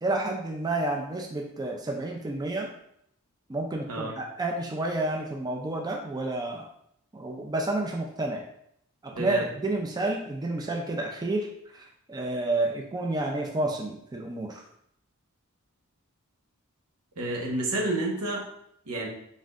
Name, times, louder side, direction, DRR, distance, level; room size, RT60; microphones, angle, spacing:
voice 1, 0.0-2.7 3.5-6.7 7.1-8.4 9.0-11.5 11.7-14.6, right 2 dB, 20° right, 1 dB, 0.4 m, -30 dB
voice 2, 9.1-9.5 17.2-18.4 18.9-19.1, right 2 dB, 80° right, -1 dB, 1.1 m, -29 dB
4.2 x 3.5 x 2.4 m, 0.71 s
head